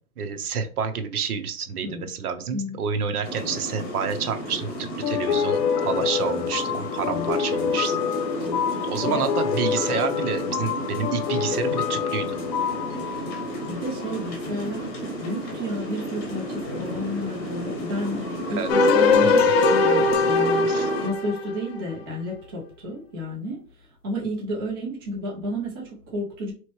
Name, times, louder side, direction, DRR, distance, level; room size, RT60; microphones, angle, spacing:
voice 1, 0.2-8.0 8.9-12.4 18.5-18.7 19.2-19.3 20.6-20.9, right 6 dB, 65° right, 0.9 m, -29 dB
sound 1, 3.2-21.1, equal, 15° left, 1.0 m, -33 dB
sound 2, 5.0-14.3, left 8 dB, 85° left, 0.7 m, -27 dB
voice 2, 8.4-9.2 12.9-13.4 13.7-20.7 21.0-26.5, equal, 15° right, 0.5 m, -32 dB
sound 3, 18.7-21.9, left 3 dB, 40° left, 0.5 m, -20 dB
4.2 x 3.1 x 3.1 m
hypercardioid pair, 160°, 48 cm